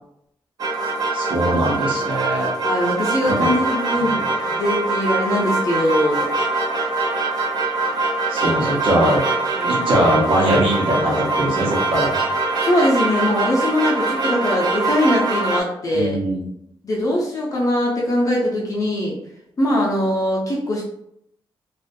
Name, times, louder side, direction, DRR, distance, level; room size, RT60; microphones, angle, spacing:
sound 1, 0.6-15.6, right 3 dB, 50° right, 0.5 m, -23 dB
voice 1, 1.1-2.5 3.3-3.5 4.0-4.2 8.3-9.2 9.6-12.2 15.9-16.5, right 1 dB, 80° right, -3 dB, 0.8 m, -21 dB
voice 2, 2.6-4.2 4.5-6.3 9.5-9.9 12.6-16.2 16.8-19.1 19.6-20.8, left 1 dB, 40° left, -3 dB, 0.6 m, -21 dB
2.5 x 2.4 x 2.2 m, 0.75 s
wide cardioid pair, 120°, 9 cm